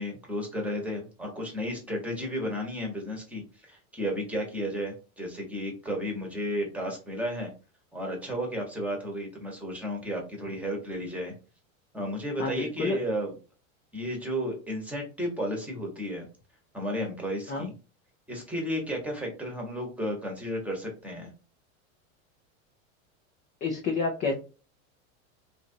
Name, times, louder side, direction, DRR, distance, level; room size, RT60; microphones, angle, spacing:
voice 1, 0.0-7.5 7.9-11.3 11.9-13.3 13.9-16.3 16.7-17.7 18.3-21.3, equal, 5° right, 0 dB, 1.0 m, -33 dB
voice 2, 12.4-13.0 17.5-17.7 23.6-24.3, left 4 dB, 20° left, 2 dB, 0.4 m, -29 dB
2.9 x 2.5 x 2.6 m, 0.33 s
supercardioid pair, 130°, 40 cm